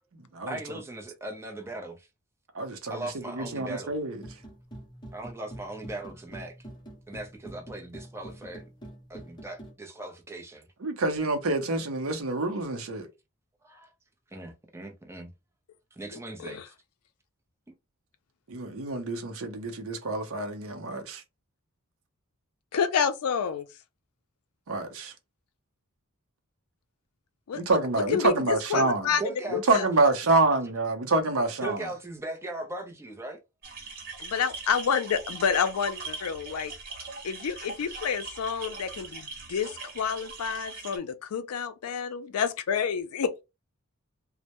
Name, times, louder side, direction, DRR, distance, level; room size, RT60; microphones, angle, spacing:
voice 1, 0.5-2.1 2.9-3.9 5.1-6.6 7.1-8.6 9.1-10.7 13.6-13.9 14.3-15.3 15.9-16.7 17.7-17.8 28.7-29.6 31.6-33.4, right 2 dB, 10° right, 0.5 m, -38 dB
voice 2, 2.5-4.2 10.8-13.1 18.5-21.2 24.7-25.1 27.5-29.1 29.5-31.9, right 2 dB, 65° right, 0.6 m, -27 dB
sound 1, 4.1-9.7, right 1 dB, 20° left, 0.7 m, -45 dB
voice 3, 22.7-23.7 27.5-29.2 29.5-29.9 34.2-36.7 37.2-43.4, left 6 dB, 80° left, 0.4 m, -29 dB
sound 2, 33.6-41.0, right 3 dB, 45° right, 1.0 m, -41 dB
2.1 x 2.0 x 2.8 m
head